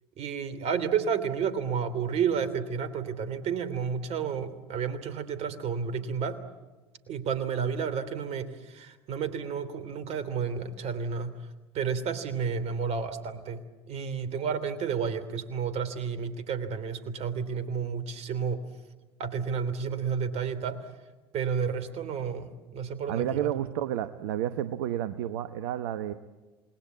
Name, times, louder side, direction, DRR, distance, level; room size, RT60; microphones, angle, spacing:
voice 1, 0.2-6.4 7.1-11.3 11.7-18.6 19.2-20.8 21.3-23.5, right 6 dB, 55° right, 14 dB, 3.1 m, -31 dB
voice 2, 23.1-26.1, right 11 dB, 70° right, 11 dB, 1.0 m, -30 dB
28.0 x 20.5 x 8.5 m, 1.2 s
hypercardioid pair, 65°, 13 cm